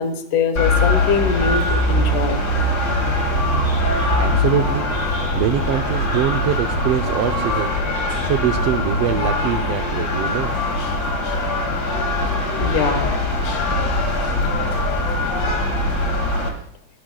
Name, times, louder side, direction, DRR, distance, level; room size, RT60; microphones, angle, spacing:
voice 1, 0.0-2.4 10.8-11.0 11.2-11.4 12.6-13.1 13.4-13.6, left 5 dB, 80° left, 9 dB, 2.7 m, -23 dB
sound 1, 0.6-16.5, left 1 dB, 35° left, 2.5 m, -21 dB
voice 2, 4.2-4.9 5.3-7.8 8.2-10.5, right 10 dB, 80° right, 5 dB, 1.4 m, -23 dB
23.5 x 11.5 x 2.3 m, 0.68 s
omnidirectional pair, 3.5 m